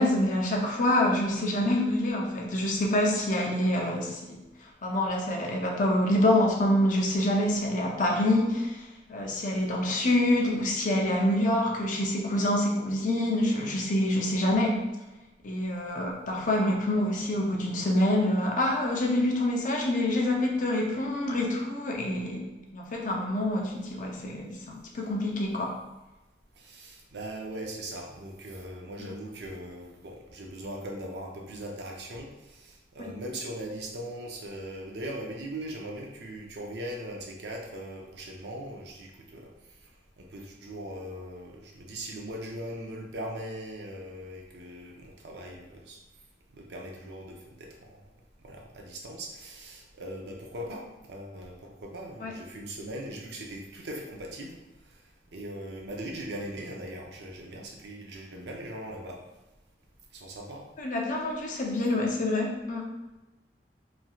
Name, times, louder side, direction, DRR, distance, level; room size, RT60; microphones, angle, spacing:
voice 1, 0.0-4.4 4.8-8.8 9.1-14.7 15.4-22.4 22.7-25.7 29.0-29.1 33.0-33.1 52.2-52.3 60.8-62.8, left 1 dB, 45° left, -1 dB, 0.6 m, -26 dB
voice 2, 26.6-32.3 32.6-39.4 40.2-46.0 46.7-47.7 48.4-54.6 55.3-59.2 60.1-60.6, right 1 dB, 65° right, 0 dB, 0.6 m, -40 dB
3.1 x 2.7 x 2.3 m, 1.0 s
head